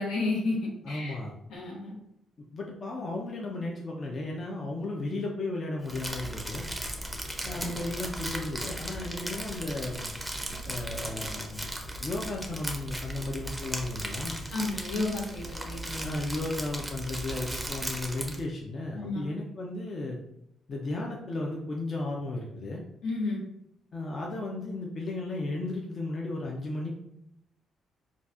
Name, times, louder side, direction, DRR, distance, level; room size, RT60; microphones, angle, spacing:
voice 1, 0.0-1.2 1.5-2.0 14.5-16.1 19.0-19.3 23.0-23.4, left 2 dB, 80° left, -2 dB, 1.0 m, -32 dB
voice 2, 0.8-1.3 2.5-6.6 7.4-10.1 10.7-14.4 16.0-20.2 20.7-22.8 23.9-26.9, left 2 dB, 45° left, -2 dB, 0.5 m, -34 dB
Crumpling crinkling, 5.8-18.4, right 1 dB, 5° right, 0.5 m, -37 dB
3.9 x 2.3 x 2.4 m, 0.78 s
cardioid pair, 90°, 0 cm